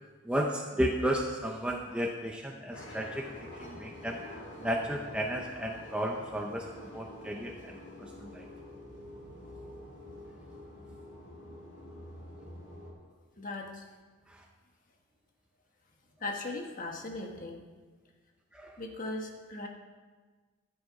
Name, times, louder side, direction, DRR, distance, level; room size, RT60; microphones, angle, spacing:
voice 1, 0.2-4.2 4.6-8.5 14.3-14.5 18.5-18.8, equal, 5° right, 0 dB, 0.6 m, -34 dB
sound 1, 2.7-12.9, left 1 dB, 55° left, 2.6 m, -47 dB
voice 2, 13.4-13.8 16.2-17.6 18.8-19.7, left 2 dB, 40° left, 1 dB, 1.3 m, -38 dB
13.0 x 7.7 x 4.8 m, 1.4 s
head